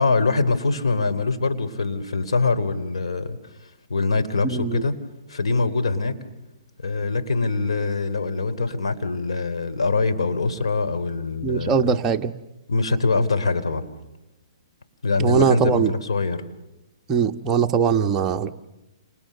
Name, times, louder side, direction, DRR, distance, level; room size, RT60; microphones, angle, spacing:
voice 1, 0.0-3.4 3.9-4.9 5.3-6.2 6.8-12.0 12.7-13.8 15.0-16.4, left 3 dB, 90° left, 8 dB, 3.4 m, -23 dB
voice 2, 4.4-4.8 11.4-12.3 15.2-15.9 17.1-18.5, right 6 dB, 20° right, 4 dB, 1.2 m, -21 dB
29.5 x 29.5 x 6.8 m, 0.99 s
hypercardioid pair, 145°, 3 cm